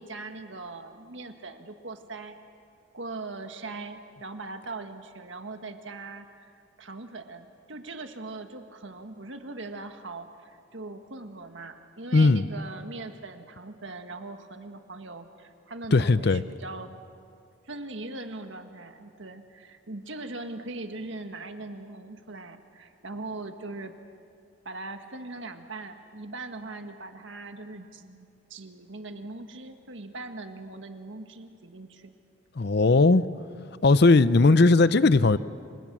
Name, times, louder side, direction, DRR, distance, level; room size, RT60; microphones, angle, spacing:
voice 1, 0.0-2.4 2.9-17.0 17.7-23.9 24.6-32.1, right 2 dB, 70° right, 6 dB, 1.7 m, -40 dB
voice 2, 12.1-12.5 15.9-16.4 32.6-33.2 33.8-35.4, left 3 dB, 55° left, 15 dB, 0.6 m, -18 dB
28.5 x 26.0 x 6.2 m, 2.3 s
head